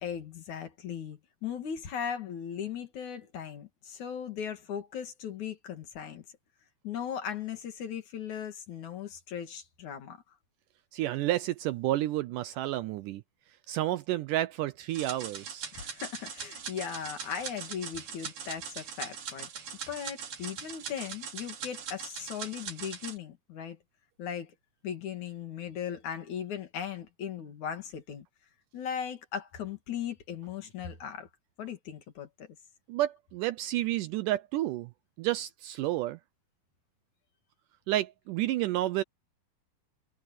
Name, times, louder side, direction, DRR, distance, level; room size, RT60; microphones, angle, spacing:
voice 1, 0.0-6.2 6.8-10.2 15.7-19.5 19.9-23.8 24.2-24.5 24.8-28.3 28.7-31.3 31.6-32.5, left 8 dB, 60° left, 3.2 m, -38 dB
voice 2, 10.9-13.2 13.7-15.7 32.9-34.9 35.2-36.2 37.9-39.0, right 15 dB, 80° right, 1.9 m, -30 dB
sound 1, 14.9-23.2, right 7 dB, 65° right, 4.3 m, -41 dB
omnidirectional pair, 4.1 m